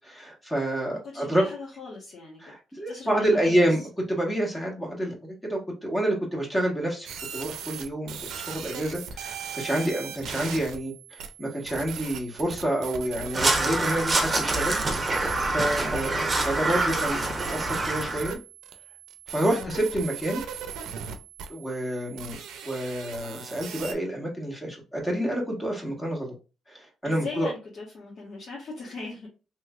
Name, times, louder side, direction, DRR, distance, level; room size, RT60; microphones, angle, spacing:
voice 1, 0.0-1.4 2.4-3.8 4.1-7.1 7.3-14.8 15.5-18.4 19.3-20.4 21.5-22.4 22.6-26.3 26.7-27.5, right 1 dB, 15° left, 1.5 m, -28 dB
voice 2, 0.9-2.4 2.9-3.6 19.5-19.8 27.0-29.3, left 3 dB, 55° left, 1.2 m, -39 dB
sound 1, 7.1-23.9, right 7 dB, 80° right, 0.5 m, -39 dB
Crow, 13.3-18.3, right 2 dB, 25° right, 0.9 m, -26 dB
3.2 x 3.1 x 2.4 m
cardioid pair, 90°, 0 cm